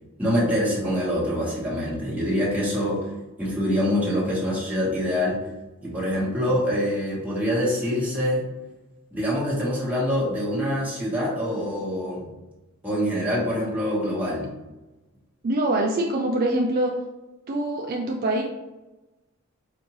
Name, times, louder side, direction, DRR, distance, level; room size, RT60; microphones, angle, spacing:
voice 1, 0.2-3.1 3.4-5.4 5.8-8.4 9.1-12.3 12.8-14.5, equal, 5° right, -7 dB, 1.2 m, -25 dB
voice 2, 15.4-16.9 17.5-18.4, right 1 dB, 45° right, 0 dB, 0.4 m, -24 dB
5.1 x 2.6 x 3.0 m, 1.1 s
head